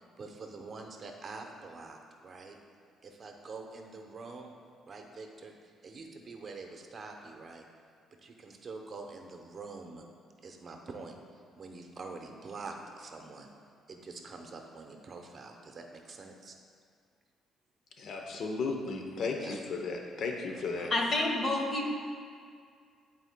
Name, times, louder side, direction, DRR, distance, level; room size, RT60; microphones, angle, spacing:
voice 1, 0.0-2.6 3.0-4.5 4.9-7.7 8.2-10.0 10.4-11.2 11.6-13.5 13.9-16.6 19.4-19.6 20.5-20.9, right 3 dB, 40° right, 3 dB, 0.7 m, -45 dB
voice 2, 18.0-20.9, left 4 dB, 60° left, 2 dB, 0.7 m, -35 dB
voice 3, 20.9-21.9, left 2 dB, 45° left, 1 dB, 1.0 m, -29 dB
11.0 x 4.3 x 2.2 m, 2.1 s
cardioid pair, 95°, 0 cm